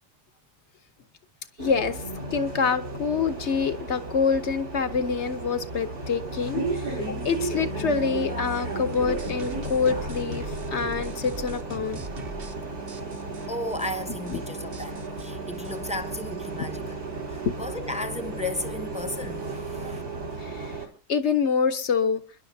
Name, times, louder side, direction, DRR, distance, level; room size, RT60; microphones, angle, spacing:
voice 1, 1.6-2.0 2.3-12.0 14.3-14.4 16.6-16.7 17.4-17.6 20.4-20.7 21.1-22.2, left 5 dB, 55° left, 1.0 m, -26 dB
Bus, 1.6-20.9, right 3 dB, 70° right, 3.5 m, -34 dB
sound 1, 8.9-12.6 12.9-13.5 13.8-13.9 14.2-14.4 14.7-16.4, right 1 dB, 40° right, 1.3 m, -40 dB
voice 2, 13.5-16.8 17.3-20.0, left 1 dB, 5° right, 0.8 m, -34 dB
28.0 x 10.5 x 2.7 m
omnidirectional pair, 1.7 m